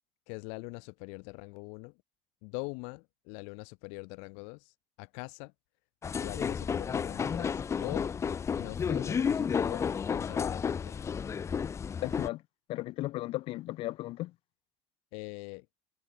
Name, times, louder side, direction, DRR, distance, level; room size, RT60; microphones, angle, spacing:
voice 1, 0.3-1.9 2.4-5.5 6.2-8.1 8.5-11.0 15.1-15.7, left 37 dB, 80° left, 2.5 m, -43 dB
sound 1, 6.0-12.3, left 6 dB, 25° left, 1.8 m, -32 dB
voice 2, 12.0-12.4 12.7-14.3, left 17 dB, 60° left, 3.1 m, -35 dB
cardioid pair, 125°, 11 cm